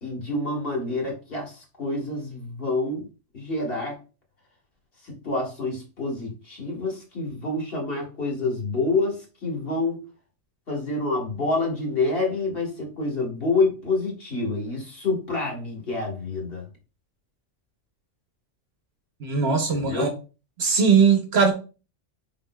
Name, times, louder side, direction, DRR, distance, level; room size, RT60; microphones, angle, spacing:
voice 1, 0.0-3.1 3.3-4.0 5.0-10.0 10.7-16.6 19.7-20.1, left 3 dB, 50° left, 1.6 m, -27 dB
voice 2, 19.2-20.1 20.6-21.5, right 5 dB, 60° right, 0.9 m, -20 dB
5.1 x 4.0 x 2.2 m
omnidirectional pair, 1.3 m